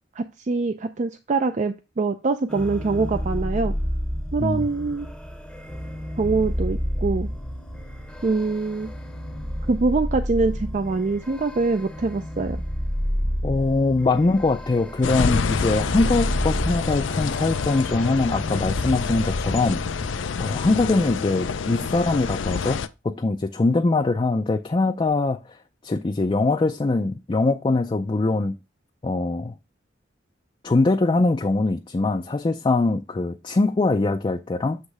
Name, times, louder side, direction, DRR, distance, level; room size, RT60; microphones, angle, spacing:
voice 1, 0.2-3.7 4.3-5.1 6.2-7.3 8.2-8.9 9.7-12.6, right 3 dB, 40° right, 0.4 m, -24 dB
sound 1, 2.5-20.3, equal, 5° left, 0.8 m, -30 dB
voice 2, 13.4-19.8 20.4-25.6 25.8-28.6 29.0-29.5 30.6-34.8, left 3 dB, 25° left, 0.4 m, -22 dB
sound 2, 15.0-22.9, left 5 dB, 85° left, 0.5 m, -27 dB
8.0 x 3.2 x 4.8 m
head